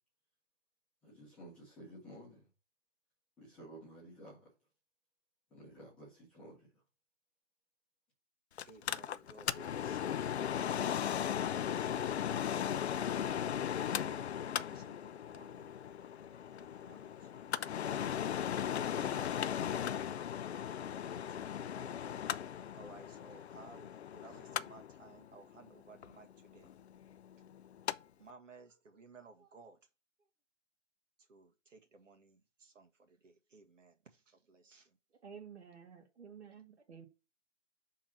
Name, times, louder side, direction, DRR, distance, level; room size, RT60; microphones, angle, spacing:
voice 1, 1.0-2.5 3.4-4.5 5.5-6.8, right 1 dB, 5° left, 0.8 m, -53 dB
Mechanical fan, 8.6-28.0 28.3-28.4, left 9 dB, 60° left, 0.5 m, -37 dB
voice 2, 8.7-14.3 14.7-15.8 16.6-19.4 20.8-22.4 22.7-26.7 28.2-29.9 30.2-30.3 31.2-35.0, right 4 dB, 85° right, 1.8 m, -59 dB
voice 3, 35.2-37.1, right 7 dB, 60° right, 2.2 m, -52 dB
6.0 x 3.7 x 5.8 m
hypercardioid pair, 170°, 37 cm